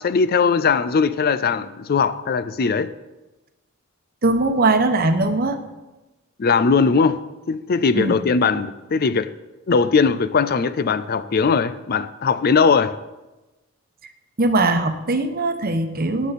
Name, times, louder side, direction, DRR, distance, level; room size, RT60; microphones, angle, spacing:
voice 1, 0.0-2.9 6.4-9.3 9.7-13.0, left 5 dB, 45° left, 0.4 m, -19 dB
voice 2, 4.2-5.6 7.9-8.2 14.4-16.3, right 2 dB, 40° right, 1.0 m, -20 dB
18.5 x 8.2 x 4.2 m
head